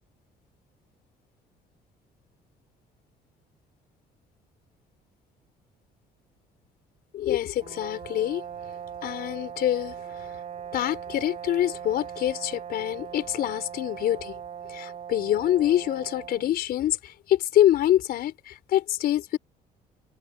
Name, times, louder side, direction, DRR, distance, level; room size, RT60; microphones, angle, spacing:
voice 1, 7.1-8.4 9.0-10.0 10.7-14.4 14.7-19.4, left 12 dB, 65° left, 4.4 m, -25 dB
sound 1, 7.6-16.5, right 8 dB, 45° right, 5.5 m, -40 dB
cardioid pair, 110°, 17 cm